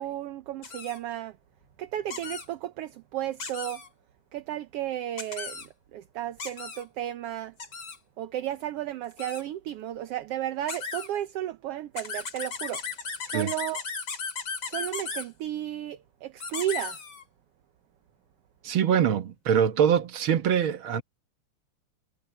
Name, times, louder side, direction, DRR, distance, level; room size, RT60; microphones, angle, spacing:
voice 1, 0.0-1.4 1.8-3.8 4.3-5.6 5.9-7.5 8.2-12.8 13.3-13.8 14.7-17.0, right 12 dB, 65° right, 1.6 m, -33 dB
sound 1, 0.6-1.0 2.1-2.5 3.4-3.9 5.2-5.7 6.4-6.8 7.6-8.0 9.1-9.4 10.7-11.1 12.0-15.3 16.4-17.2, left 5 dB, 40° left, 3.6 m, -36 dB
voice 2, 18.6-21.0, right 8 dB, 50° right, 1.9 m, -23 dB
omnidirectional pair, 3.3 m